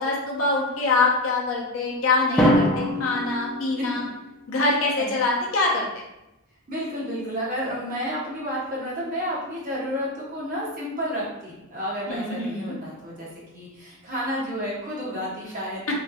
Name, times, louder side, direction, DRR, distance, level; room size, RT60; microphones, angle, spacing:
voice 1, 0.0-4.0 4.5-5.9 12.1-12.8 15.9-16.0, left 3 dB, 70° left, -2 dB, 0.6 m, -24 dB
Drum, 2.4-4.4, equal, 5° left, 0.4 m, -24 dB
voice 2, 6.7-13.3 13.5-15.9, equal, 40° right, -7 dB, 0.9 m, -31 dB
3.1 x 2.6 x 2.2 m, 0.92 s
head